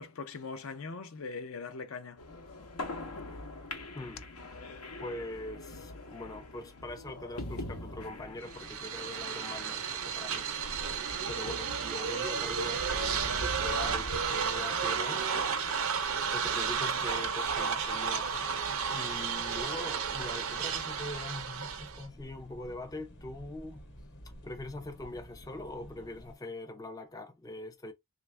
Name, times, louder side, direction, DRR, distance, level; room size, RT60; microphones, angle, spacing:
voice 1, 0.0-2.2, left 4 dB, 65° left, 0.5 m, -41 dB
sound 1, 2.2-15.8, left 2 dB, 90° left, 0.8 m, -45 dB
voice 2, 5.0-10.4 10.8-11.0 11.3-15.3 16.3-18.3 18.9-23.8 24.4-27.9, left 2 dB, 15° left, 0.4 m, -42 dB
sound 2, 8.0-26.3, equal, 50° left, 1.1 m, -48 dB
sound 3, 8.5-22.1, right 6 dB, 65° right, 0.5 m, -33 dB
3.3 x 2.4 x 3.1 m
head